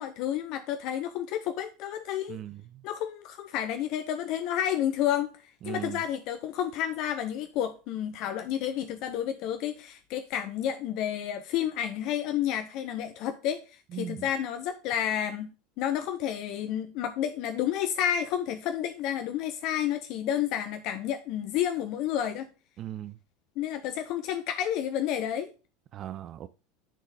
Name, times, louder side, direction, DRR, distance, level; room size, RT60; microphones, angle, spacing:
voice 1, 0.0-2.4 2.8-5.3 5.7-13.6 13.9-15.5 15.8-22.5 23.6-25.5, left 10 dB, 50° left, 0.6 m, -30 dB
voice 2, 2.3-2.8 5.6-6.0 13.9-14.3 22.8-23.2 25.9-26.5, right 11 dB, 40° right, 0.4 m, -38 dB
9.1 x 3.8 x 4.0 m
figure-of-eight pair, 80°, 0 cm